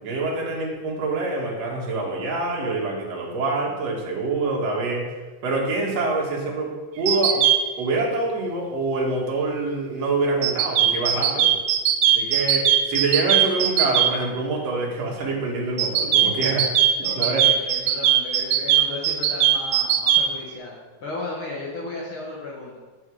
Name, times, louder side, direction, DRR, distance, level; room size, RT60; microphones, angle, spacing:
voice 1, 0.0-5.0 5.4-7.5 7.8-11.5 12.2-16.7 17.0-17.5, right 3 dB, 60° right, -2 dB, 2.9 m, -26 dB
sound 1, 7.1-7.6 10.4-14.1 15.8-20.2, right 11 dB, 80° right, 1.4 m, -19 dB
voice 2, 17.0-22.8, left 2 dB, 50° left, -4 dB, 2.0 m, -35 dB
8.4 x 7.1 x 4.9 m, 1.3 s
omnidirectional pair, 3.5 m